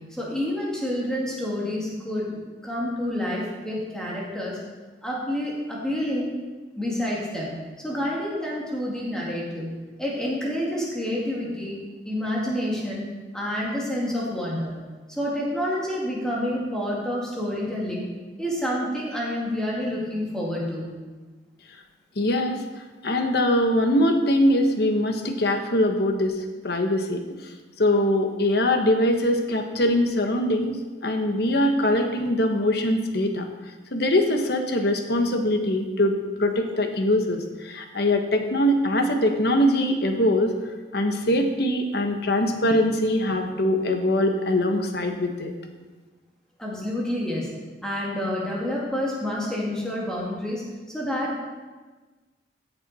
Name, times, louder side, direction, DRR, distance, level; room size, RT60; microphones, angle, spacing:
voice 1, 0.1-4.6 5.0-6.3 6.8-14.8 15.1-18.1 18.4-20.9 46.6-47.5 47.8-51.5, left 1 dB, 5° left, -5 dB, 2.3 m, -28 dB
voice 2, 22.2-22.6 23.0-26.4 26.6-27.2 27.8-33.5 33.9-40.5 40.9-45.5, left 1 dB, 60° left, 5 dB, 1.1 m, -22 dB
14.5 x 6.8 x 4.2 m, 1.3 s
head